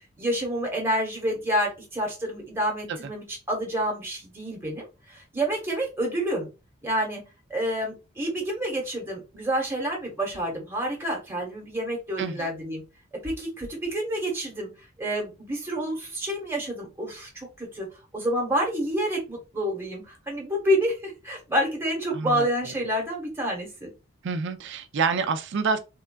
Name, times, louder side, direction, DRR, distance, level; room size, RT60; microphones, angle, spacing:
voice 1, 0.0-6.5 6.8-7.2 7.5-12.8 13.2-14.7 15.0-17.9 18.1-23.9, equal, 10° right, 1.0 m, -28 dB
voice 2, 12.2-12.5 22.1-22.5 24.2-25.8, right 5 dB, 55° right, 0.4 m, -27 dB
3.6 x 2.2 x 2.2 m
head